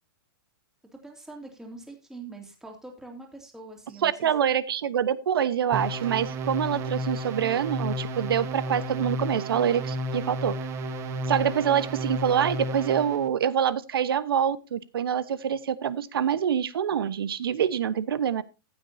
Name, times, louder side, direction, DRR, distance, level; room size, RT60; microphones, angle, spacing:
voice 1, 0.9-4.3, right 3 dB, 5° right, 2 dB, 2.7 m, -44 dB
voice 2, 4.0-10.6 11.3-18.4, right 9 dB, 90° right, 16 dB, 1.0 m, -26 dB
sound 1, 5.7-13.3, right 1 dB, 20° right, 1.1 m, -32 dB
15.0 x 9.2 x 2.8 m, 0.29 s
hypercardioid pair, 160°, 12 cm